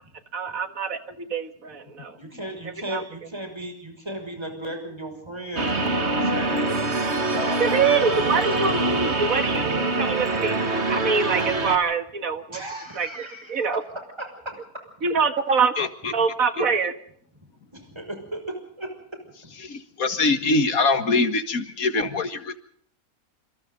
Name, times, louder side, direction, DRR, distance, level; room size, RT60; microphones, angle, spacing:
voice 1, 0.3-2.2 2.6-3.0 7.6-10.6 10.9-12.6 12.9-13.8 15.0-15.7 16.1-16.9, right 5 dB, 65° right, 9 dB, 2.0 m, -25 dB
voice 2, 2.1-7.9 12.5-13.8 14.2-14.6 17.7-19.5, right 1 dB, 15° right, 5 dB, 6.1 m, -36 dB
sound 1, 5.6-11.8, right 2 dB, 45° right, 2.3 m, -24 dB
voice 3, 15.8-16.1 19.6-22.6, left 3 dB, 70° left, 9 dB, 2.2 m, -23 dB
27.5 x 27.0 x 3.9 m, 0.63 s
omnidirectional pair, 1.6 m